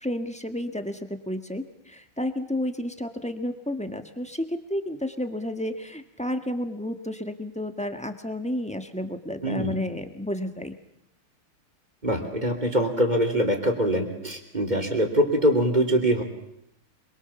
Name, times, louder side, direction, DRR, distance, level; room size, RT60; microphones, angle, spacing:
voice 1, 0.0-10.7, left 1 dB, 5° left, 7 dB, 1.3 m, -31 dB
voice 2, 9.4-9.8 12.0-16.2, equal, 20° right, 4 dB, 3.1 m, -23 dB
26.0 x 23.0 x 7.1 m, 0.79 s
omnidirectional pair, 2.3 m